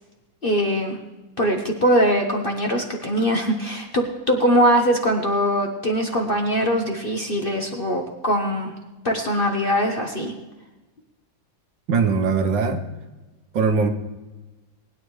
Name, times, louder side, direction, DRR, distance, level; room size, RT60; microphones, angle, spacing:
voice 1, 0.4-1.0 1.4-8.7 9.0-10.3, equal, 35° left, 2 dB, 1.0 m, -22 dB
voice 2, 11.9-12.8 13.5-13.9, right 5 dB, 75° right, 6 dB, 1.7 m, -20 dB
20.0 x 9.7 x 3.2 m, 1.2 s
omnidirectional pair, 2.0 m